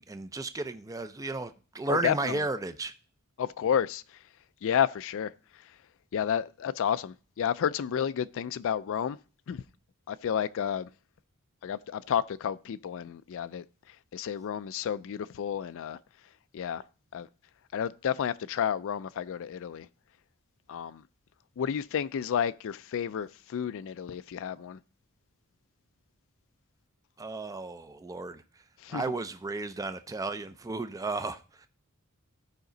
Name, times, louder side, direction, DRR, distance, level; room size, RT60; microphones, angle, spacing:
voice 1, 0.0-2.9 27.2-28.4 28.9-31.7, right 3 dB, 15° right, 0.4 m, -34 dB
voice 2, 1.9-2.5 3.4-4.2 4.6-5.7 6.1-9.2 9.5-9.6 10.1-10.9 11.6-16.0 16.5-16.8 17.1-17.3 17.7-19.9 20.7-21.0 21.6-24.8 28.8-29.0, left 8 dB, 65° left, 0.4 m, -31 dB
15.0 x 5.1 x 3.9 m
head